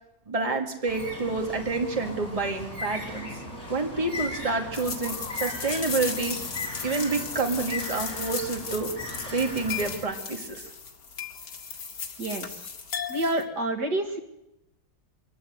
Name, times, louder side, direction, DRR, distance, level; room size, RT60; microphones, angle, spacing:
voice 1, 0.3-3.4 3.7-6.4 6.8-8.9 9.3-10.7, right 3 dB, 20° right, 3 dB, 2.2 m, -28 dB
Bird, 0.9-10.0, left 1 dB, 40° left, 6.6 m, -37 dB
sound 1, 4.7-13.4, left 6 dB, 90° left, 2.5 m, -36 dB
voice 2, 12.2-12.7 13.1-14.2, right 1 dB, 80° right, 4 dB, 2.7 m, -28 dB
24.5 x 14.0 x 8.2 m, 0.90 s
omnidirectional pair, 1.8 m